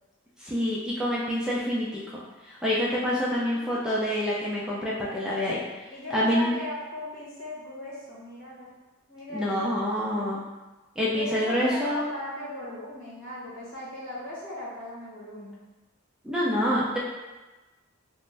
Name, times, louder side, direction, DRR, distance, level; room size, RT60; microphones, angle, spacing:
voice 1, 0.4-2.0 2.4-5.6 6.1-6.6 9.3-10.4 11.0-12.0 16.2-17.0, equal, 5° right, -7 dB, 0.3 m, -27 dB
voice 2, 3.3-4.0 5.9-8.7 9.1-9.7 11.1-15.6, left 1 dB, 65° left, -8 dB, 1.0 m, -38 dB
2.5 x 2.1 x 3.2 m, 1.2 s
head